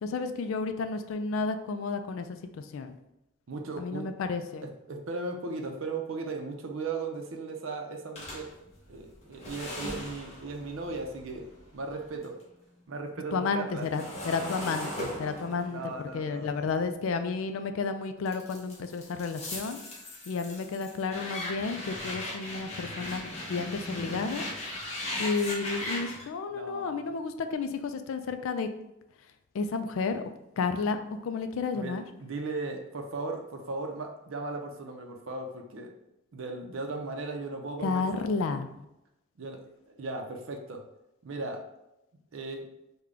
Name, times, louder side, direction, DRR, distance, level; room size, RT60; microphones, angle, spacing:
voice 1, 0.0-2.3 2.5-3.0 3.8-4.7 13.3-15.8 16.1-19.8 20.3-24.5 25.2-28.7 29.5-30.3 30.6-32.0 37.8-38.7, left 4 dB, 75° left, 8 dB, 0.3 m, -31 dB
voice 2, 3.5-4.1 4.6-8.5 8.9-11.5 11.7-12.4 12.9-13.9 15.7-16.7 26.5-27.1 31.7-35.9 36.3-38.3 39.4-40.8 41.2-41.7 42.3-42.7, right 3 dB, 70° right, 3 dB, 0.5 m, -37 dB
sound 1, 8.2-12.4 12.8-17.7 18.3-26.3, left 1 dB, 30° left, 0.8 m, -39 dB
3.7 x 2.2 x 3.3 m, 0.89 s
head